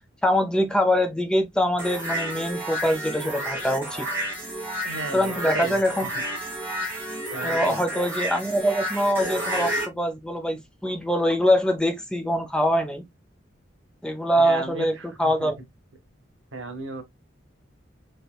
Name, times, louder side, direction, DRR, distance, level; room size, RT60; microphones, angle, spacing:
voice 1, 0.2-4.1 5.1-6.1 7.4-13.1 14.0-15.6, equal, 5° left, 0.5 m, -24 dB
sound 1, 1.8-9.9, right 1 dB, 10° right, 1.3 m, -31 dB
voice 2, 4.8-5.8 6.1-6.2 7.3-7.8 14.4-15.5 16.5-17.0, right 3 dB, 90° right, 0.9 m, -35 dB
3.4 x 2.8 x 2.3 m
head